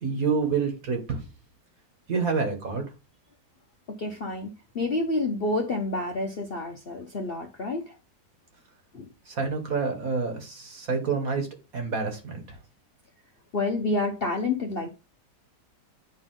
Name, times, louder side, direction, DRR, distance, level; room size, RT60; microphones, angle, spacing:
voice 1, 0.0-1.2 2.1-2.9 9.3-11.5 11.7-12.4, right 5 dB, 50° right, 2.1 m, -28 dB
voice 2, 4.0-4.5 4.7-7.9 8.9-9.1 13.5-14.9, left 2 dB, 45° left, 0.8 m, -28 dB
9.7 x 4.1 x 3.7 m
omnidirectional pair, 1.9 m